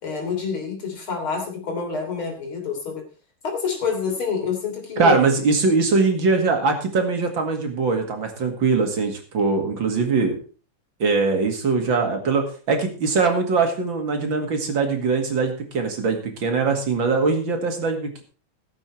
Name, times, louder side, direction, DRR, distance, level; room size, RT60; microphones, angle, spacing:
voice 1, 0.0-3.0 3.4-5.2, left 5 dB, 90° left, 3 dB, 4.2 m, -27 dB
voice 2, 5.0-10.4 11.0-18.2, right 4 dB, 70° right, 4 dB, 2.9 m, -22 dB
15.5 x 8.1 x 4.5 m, 0.37 s
omnidirectional pair, 2.2 m